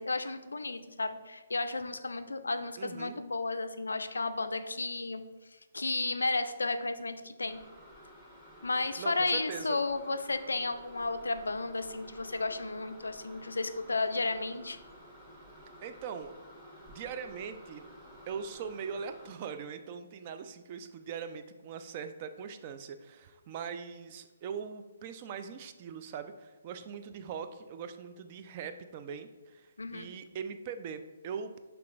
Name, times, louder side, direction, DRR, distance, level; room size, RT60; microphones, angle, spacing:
voice 1, 0.0-5.2 5.7-7.6 8.6-14.8 29.8-30.1, left 3 dB, 85° left, 10 dB, 0.3 m, -33 dB
voice 2, 2.8-3.2 9.0-9.8 15.8-16.3 16.9-17.8 18.3-31.6, right 6 dB, 40° right, 9 dB, 0.3 m, -41 dB
sound 1, 7.5-19.3, equal, ahead, 1.0 m, -52 dB
5.8 x 3.4 x 2.4 m, 1.2 s
figure-of-eight pair, 135°, 0 cm